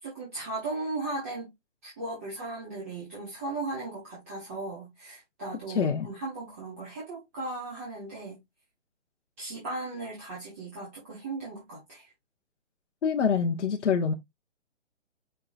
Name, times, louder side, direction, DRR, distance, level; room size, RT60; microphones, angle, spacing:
voice 1, 0.0-1.5 1.8-8.4 9.4-12.1, right 2 dB, 10° right, 0.9 m, -37 dB
voice 2, 5.7-6.1 13.0-14.1, left 6 dB, 65° left, 1.0 m, -25 dB
5.5 x 3.7 x 2.5 m
hypercardioid pair, 175°, 37 cm